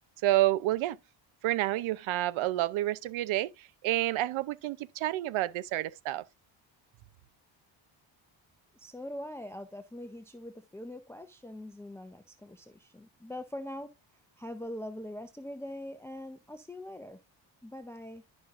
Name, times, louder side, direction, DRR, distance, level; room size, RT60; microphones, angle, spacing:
voice 1, 0.2-1.0 1.4-6.2, right 15 dB, 80° right, 0.6 m, -29 dB
voice 2, 8.8-13.9 14.4-17.2 17.6-18.2, left 1 dB, 5° left, 0.5 m, -42 dB
11.0 x 5.4 x 2.5 m
cardioid pair, 105°, 47 cm